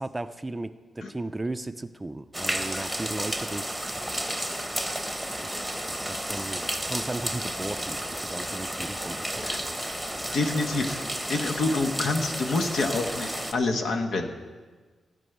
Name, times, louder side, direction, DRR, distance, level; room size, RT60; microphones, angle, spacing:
voice 1, 0.0-4.4 5.4-5.6 5.9-9.7, right 2 dB, 15° right, 10 dB, 0.5 m, -36 dB
sound 1, 2.3-13.5, right 1 dB, ahead, 1.0 m, -32 dB
voice 2, 10.3-11.0 11.3-14.3, left 3 dB, 80° left, 5 dB, 1.3 m, -27 dB
16.0 x 5.4 x 9.3 m, 1.4 s
wide cardioid pair, 125°, 0 cm